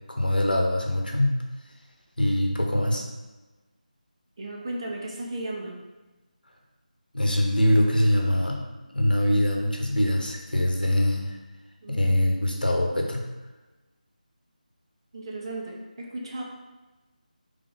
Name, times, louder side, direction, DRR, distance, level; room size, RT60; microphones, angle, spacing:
voice 1, 0.1-1.4 2.2-3.0 7.1-8.6 8.9-11.4 11.9-13.2, left 1 dB, 90° left, 1 dB, 1.1 m, -23 dB
voice 2, 4.4-5.8 11.8-12.4 15.1-16.4, right 2 dB, 35° right, -1 dB, 0.8 m, -35 dB
3.8 x 3.5 x 3.8 m, 1.1 s
figure-of-eight pair, 165°, 5 cm